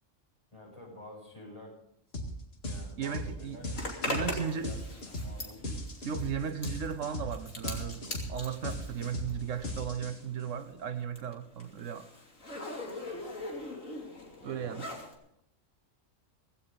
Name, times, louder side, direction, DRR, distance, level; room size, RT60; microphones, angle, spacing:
voice 1, 0.5-1.8 2.6-6.0 14.4-15.1, left 1 dB, 25° left, 7.7 m, -50 dB
sound 1, 2.1-2.3 2.6-10.4, left 1 dB, 50° left, 2.3 m, -37 dB
voice 2, 3.0-3.6 4.1-4.7 6.0-12.1 14.4-14.9, right 7 dB, 75° right, 1.1 m, -36 dB
Zipper (clothing), 3.7-9.9 10.2-15.1, left 2 dB, 80° left, 3.3 m, -41 dB
17.5 x 16.5 x 4.0 m
omnidirectional pair, 1.3 m